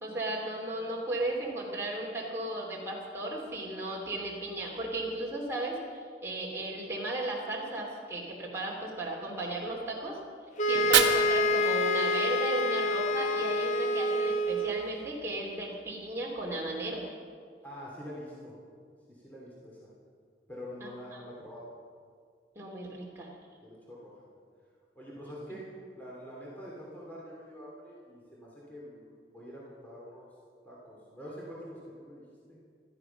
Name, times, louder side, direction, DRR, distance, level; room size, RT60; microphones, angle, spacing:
voice 1, 0.0-10.2 10.7-17.0 21.1-21.2 22.5-23.3, right 1 dB, 15° right, -4 dB, 2.9 m, -35 dB
sound 1, 10.6-15.0, left 1 dB, 40° left, 0.7 m, -27 dB
Fire, 10.6-12.6, right 8 dB, 75° right, 1.2 m, -30 dB
voice 2, 17.6-18.6 19.1-19.9 20.5-21.7 23.6-24.2 24.9-25.6 25.9-30.3 30.6-32.6, equal, 10° left, -6 dB, 3.0 m, -45 dB
16.0 x 13.5 x 6.0 m, 2.1 s
head